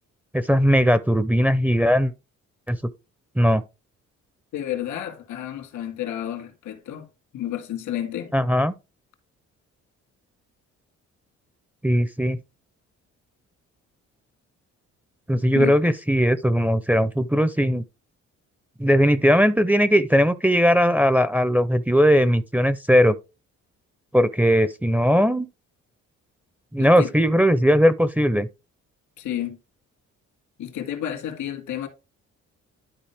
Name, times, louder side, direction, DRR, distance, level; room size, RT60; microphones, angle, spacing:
voice 1, 0.3-2.1 2.7-2.8 3.4-3.6 8.3-8.7 11.8-12.4 15.3-17.8 18.8-23.2 24.1-25.5 26.7-28.5, equal, 5° right, 0.5 m, -19 dB
voice 2, 4.5-7.1 7.3-8.3 15.5-15.7 26.8-27.1 29.2-29.6 30.6-31.9, left 11 dB, 80° left, 2.0 m, -31 dB
12.0 x 4.2 x 3.4 m
cardioid pair, 90°, 30 cm